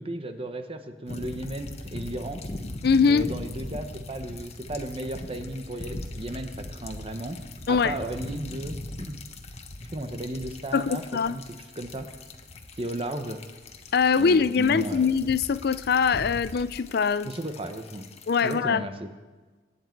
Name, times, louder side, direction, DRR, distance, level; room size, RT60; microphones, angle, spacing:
voice 1, 0.0-2.4 3.0-7.4 7.7-9.2 9.9-12.1 12.8-13.4 14.2-15.1 17.2-18.0 18.4-19.1, right 1 dB, 30° right, 1.1 m, -35 dB
sound 1, 1.1-18.6, left 1 dB, 35° left, 1.2 m, -40 dB
voice 2, 2.8-3.3 7.7-8.0 10.7-11.3 13.9-17.3 18.3-18.8, left 5 dB, 60° left, 0.4 m, -22 dB
24.0 x 9.5 x 4.6 m
head